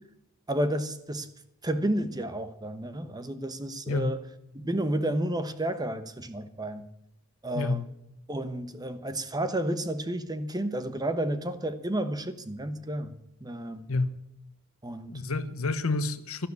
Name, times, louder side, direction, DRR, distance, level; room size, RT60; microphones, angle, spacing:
voice 1, 0.5-1.3 1.6-4.2 4.5-6.8 7.4-7.8 8.3-13.1 13.4-13.9 14.8-15.1 15.8-15.9, right 1 dB, 20° right, 1.1 m, -31 dB
voice 2, 3.9-4.2 7.5-7.8 13.9-14.1 15.1-16.5, left 3 dB, 70° left, 1.1 m, -29 dB
13.0 x 11.0 x 8.3 m
head